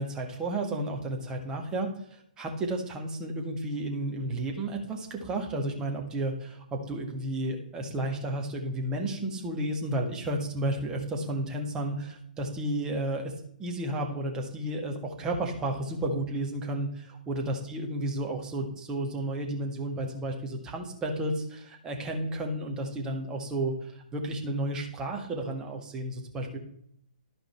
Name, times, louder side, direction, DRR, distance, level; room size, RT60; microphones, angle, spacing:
voice 1, 0.0-13.3 13.6-26.6, right 1 dB, 15° right, 1 dB, 1.6 m, -32 dB
12.0 x 5.1 x 4.4 m, 0.70 s
hypercardioid pair, 135°, 5 cm